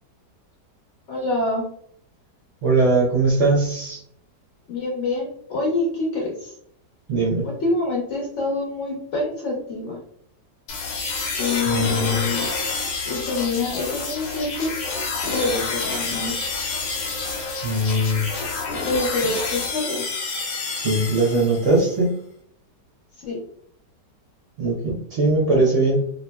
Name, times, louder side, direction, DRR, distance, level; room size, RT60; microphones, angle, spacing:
voice 1, 1.1-1.6 4.7-6.5 7.4-10.0 11.4-12.5 13.0-15.0 15.3-16.4 18.9-20.0 23.2-23.4, left 3 dB, 55° left, -2 dB, 0.9 m, -26 dB
voice 2, 2.6-4.0 7.1-7.5 11.7-12.2 17.6-18.2 20.8-22.2 24.6-26.0, right 2 dB, 55° right, -4 dB, 0.9 m, -20 dB
sound 1, 10.7-21.9, left 4 dB, 85° left, 1.4 m, -28 dB
3.0 x 2.8 x 2.2 m, 0.64 s
omnidirectional pair, 1.9 m